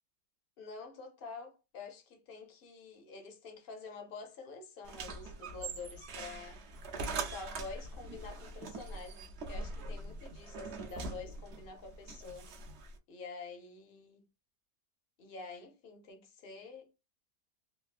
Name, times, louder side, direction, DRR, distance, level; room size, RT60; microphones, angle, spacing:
voice 1, 0.6-6.6 7.1-12.5 13.1-14.2 15.2-17.0, left 4 dB, 50° left, 0.7 m, -48 dB
sound 1, 4.8-13.0, right 3 dB, 60° right, 0.7 m, -42 dB
3.5 x 2.4 x 2.5 m
omnidirectional pair, 1.8 m